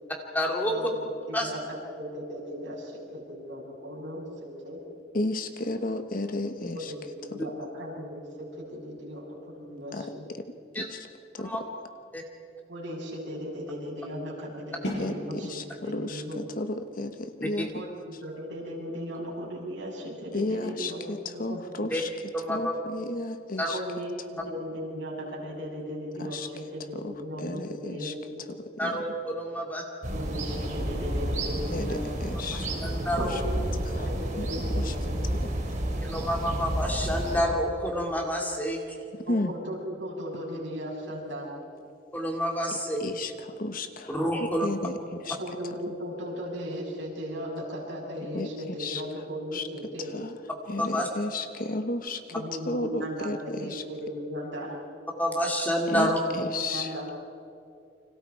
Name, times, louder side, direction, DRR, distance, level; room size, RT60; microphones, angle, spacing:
voice 1, 0.3-0.7 1.3-1.5 10.7-10.9 11.4-11.6 12.1-12.2 17.6-17.7 21.9-22.0 22.3-22.8 23.6-23.7 28.8-29.8 32.8-33.4 36.0-39.0 42.1-43.0 44.1-44.7 50.8-51.1 55.2-56.2, equal, 10° left, 0 dB, 2.6 m, -28 dB
voice 2, 1.3-4.8 6.7-10.3 12.7-16.4 17.7-21.9 23.7-28.4 30.1-32.0 33.2-33.6 33.9-35.1 39.2-41.5 45.2-50.1 52.3-54.8 56.7-57.1, equal, 70° right, -3 dB, 7.3 m, -37 dB
voice 3, 5.1-6.9 7.3-7.5 9.9-11.1 11.3-11.6 15.0-17.8 20.3-22.1 22.5-23.8 26.2-26.5 26.9-28.1 28.5-29.0 31.7-32.7 33.2-33.4 33.9-34.1 34.4-34.5 34.8-34.9 35.3-35.5 39.3-39.5 43.0-45.4 45.7-45.8 48.3-49.0 49.5-49.7 50.0-50.4 50.7-53.8 55.9-57.1, left 2 dB, 50° left, 8 dB, 1.2 m, -33 dB
sound 1, 14.8-20.6, equal, 65° left, 6.3 m, -42 dB
sound 2, 30.0-37.4, right 1 dB, 40° right, 4.5 m, -30 dB
30.0 x 25.5 x 4.7 m, 2.5 s
head